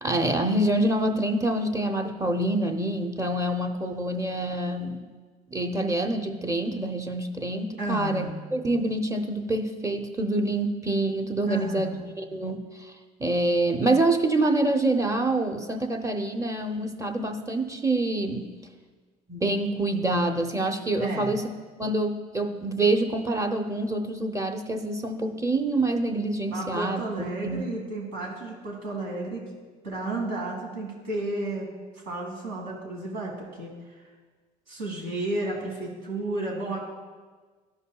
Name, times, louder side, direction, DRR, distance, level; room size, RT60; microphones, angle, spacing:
voice 1, 0.0-5.0 5.5-12.9 13.2-18.5 19.3-21.5 21.8-27.7, right 2 dB, 15° right, 5 dB, 0.7 m, -26 dB
voice 2, 7.8-8.4 11.5-12.0 21.0-21.3 26.5-29.4 29.8-31.7 31.9-34.0 34.7-36.8, right 2 dB, 80° right, -2 dB, 2.2 m, -32 dB
12.5 x 5.4 x 2.3 m, 1.4 s
supercardioid pair, 75°, 19 cm